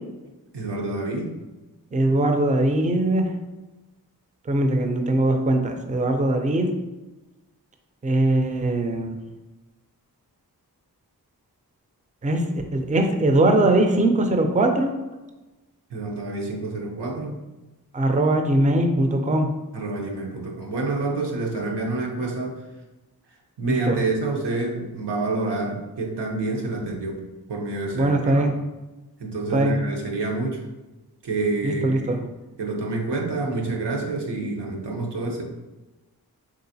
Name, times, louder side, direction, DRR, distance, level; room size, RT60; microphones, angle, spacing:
voice 1, 0.5-1.3 15.9-17.4 19.7-22.6 23.6-27.2 27.5-28.4 29.2-30.7 31.2-32.3 32.6-35.4, right 3 dB, 85° right, 0 dB, 0.7 m, -28 dB
voice 2, 1.9-3.3 4.5-6.7 8.0-9.2 12.2-12.4 12.7-14.9 17.9-19.5 23.7-24.0 27.9-28.5 29.5-29.8 31.6-32.2, right 1 dB, 20° right, 4 dB, 0.4 m, -21 dB
3.8 x 2.4 x 2.7 m, 1.1 s
cardioid pair, 45°, 40 cm